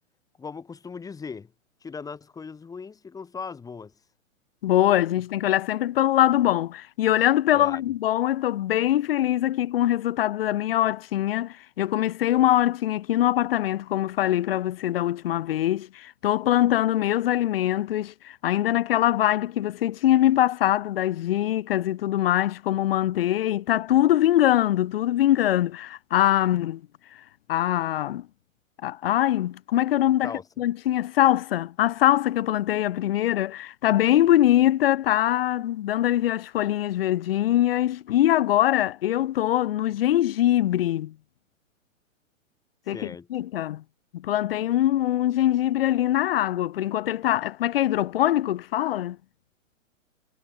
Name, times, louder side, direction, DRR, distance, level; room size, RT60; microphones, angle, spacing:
voice 1, 0.4-1.5 1.8-3.9 7.5-7.8 30.2-30.4 42.9-43.3, left 5 dB, 10° left, 1.8 m, -38 dB
voice 2, 4.6-26.8 27.5-28.3 28.8-41.1 42.9-43.8 44.1-49.2, left 13 dB, 45° left, 0.6 m, -23 dB
figure-of-eight pair, 120°, 40 cm